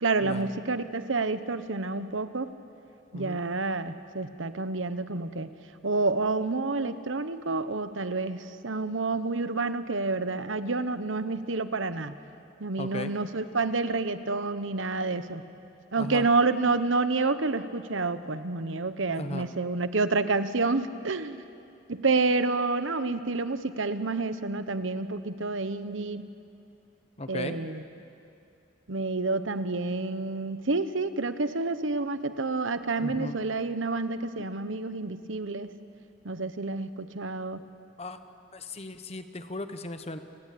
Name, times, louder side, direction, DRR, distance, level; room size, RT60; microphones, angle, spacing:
voice 1, 0.0-2.5 3.1-5.5 5.8-12.1 12.6-15.4 15.9-21.4 21.9-26.3 27.3-27.8 28.9-35.7 36.2-37.6, right 3 dB, 80° right, 11 dB, 1.1 m, -29 dB
voice 2, 12.8-13.1 16.0-16.3 19.2-19.5 27.2-27.6 33.0-33.4 38.0-38.2 38.5-40.2, left 2 dB, 30° left, 9 dB, 1.0 m, -36 dB
29.0 x 20.0 x 8.6 m, 2.6 s
head